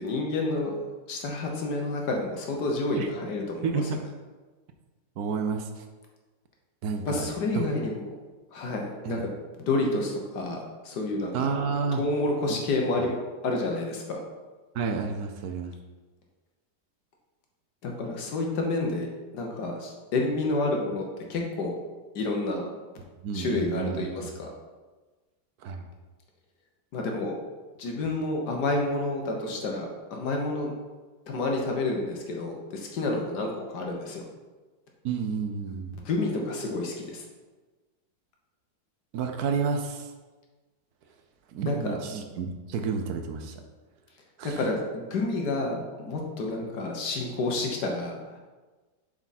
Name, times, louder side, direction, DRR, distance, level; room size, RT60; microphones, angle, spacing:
voice 1, 0.0-3.8 7.0-8.0 8.5-9.2 9.6-11.5 11.9-13.2 13.4-14.2 17.8-21.0 21.3-21.8 22.1-22.6 23.3-24.5 26.9-27.4 27.8-30.7 31.3-34.2 36.0-37.2 41.6-42.0 44.4-48.4, left 2 dB, 65° left, 1 dB, 1.6 m, -29 dB
voice 2, 3.6-4.0 5.2-5.8 6.8-7.3 7.5-7.7 9.0-9.2 11.3-12.0 12.5-12.6 14.7-15.7 23.2-24.1 25.6-25.9 35.0-36.0 39.1-40.1 41.5-43.5 44.4-44.6, right 5 dB, 65° right, 5 dB, 1.1 m, -30 dB
7.5 x 4.9 x 4.2 m, 1.3 s
omnidirectional pair, 2.0 m